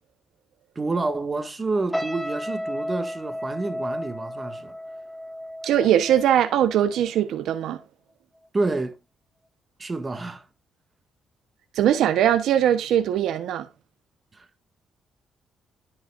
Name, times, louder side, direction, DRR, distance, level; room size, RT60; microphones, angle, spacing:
voice 1, 0.7-4.7 8.5-9.0 9.8-10.5 14.3-14.5, right 3 dB, 25° right, 1.6 m, -28 dB
sound 1, 1.9-7.2 7.5-7.8, equal, ahead, 1.2 m, -33 dB
voice 2, 5.6-7.8 11.7-13.7, right 10 dB, 80° right, 0.8 m, -21 dB
12.5 x 5.6 x 2.4 m
cardioid pair, 90°, 0 cm